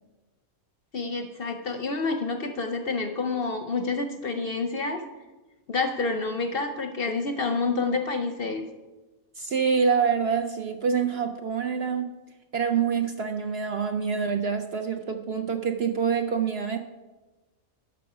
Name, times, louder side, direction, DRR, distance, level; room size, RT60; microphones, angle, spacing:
voice 1, 0.9-5.0 5.7-8.7, left 3 dB, 55° left, 7 dB, 0.7 m, -28 dB
voice 2, 9.4-12.1 12.5-16.8, right 6 dB, 60° right, 6 dB, 0.7 m, -26 dB
12.0 x 6.1 x 4.8 m, 1.2 s
omnidirectional pair, 1.5 m